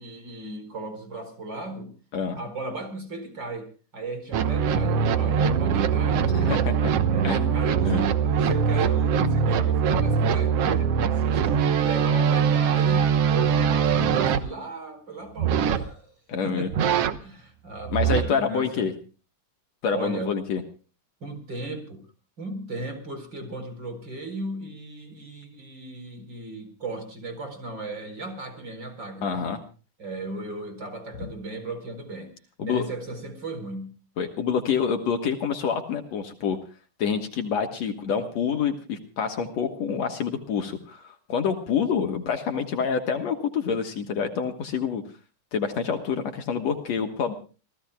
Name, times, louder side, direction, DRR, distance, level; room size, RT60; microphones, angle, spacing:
voice 1, 0.0-1.9 2.3-6.4 7.1-10.9 11.4-16.1 16.4-16.9 17.2-18.9 19.9-20.3 21.2-22.0 22.4-29.4 30.0-32.3 32.6-33.9, right 2 dB, 35° right, 7 dB, 5.0 m, -36 dB
sound 1, 4.3-14.4 15.4-15.8 16.7-17.2 17.8-18.2, right 7 dB, 60° right, 1.9 m, -22 dB
voice 2, 6.3-6.9 7.2-8.0 16.3-16.7 17.9-18.9 19.8-20.6 29.2-29.6 32.6-32.9 34.2-36.6 37.0-45.0 45.5-47.3, left 6 dB, 60° left, 6 dB, 2.5 m, -27 dB
29.0 x 16.0 x 2.3 m, 0.37 s
omnidirectional pair, 3.5 m